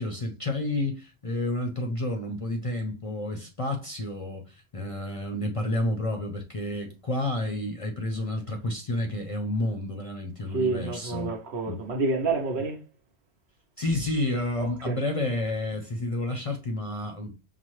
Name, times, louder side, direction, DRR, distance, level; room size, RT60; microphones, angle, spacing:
voice 1, 0.0-11.3 11.7-11.8 13.8-17.3, left 1 dB, 40° left, 0.6 m, -30 dB
voice 2, 10.5-12.8 14.6-15.0, right 3 dB, 70° right, 1.1 m, -29 dB
5.7 x 2.0 x 3.1 m
omnidirectional pair, 1.2 m